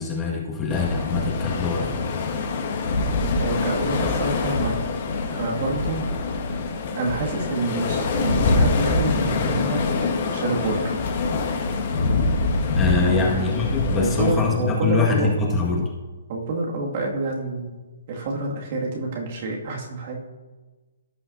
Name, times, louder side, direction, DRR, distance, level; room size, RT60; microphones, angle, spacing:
voice 1, 0.0-2.0 12.8-15.9, left 4 dB, 15° left, -2 dB, 1.7 m, -24 dB
sound 1, 0.7-14.3, left 3 dB, 55° left, 1.7 m, -24 dB
voice 2, 3.4-4.8 5.3-6.1 7.0-9.8 10.3-10.9 13.0-13.4 13.9-15.3 16.3-17.7 18.1-20.2, right 3 dB, 45° right, -2 dB, 2.1 m, -27 dB
16.0 x 5.9 x 2.7 m, 1.3 s
hypercardioid pair, 140°, 0 cm